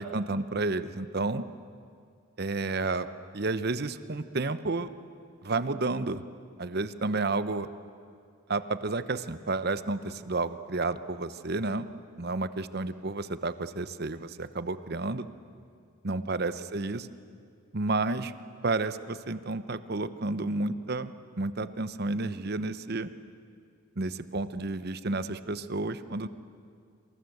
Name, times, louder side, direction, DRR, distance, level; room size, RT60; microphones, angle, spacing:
voice 1, 0.0-1.4 2.4-3.1 3.3-4.9 5.4-6.2 6.6-7.7 8.5-11.9 12.2-15.3 16.0-17.1 17.7-18.3 18.6-21.1 21.4-23.1 24.0-26.3, right 3 dB, 50° right, 13 dB, 0.9 m, -31 dB
26.5 x 26.0 x 7.9 m, 2.3 s
head